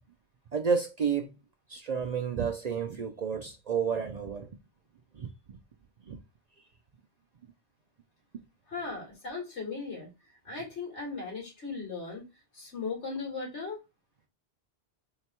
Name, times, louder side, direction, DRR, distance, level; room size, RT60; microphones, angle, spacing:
voice 1, 0.5-1.4 1.7-4.5 5.1-5.3 6.1-6.2, right 6 dB, 50° right, 0.5 m, -30 dB
voice 2, 8.7-10.1 10.4-12.2 12.5-13.8, left 4 dB, 85° left, 2.3 m, -37 dB
4.0 x 2.3 x 4.3 m
omnidirectional pair, 1.1 m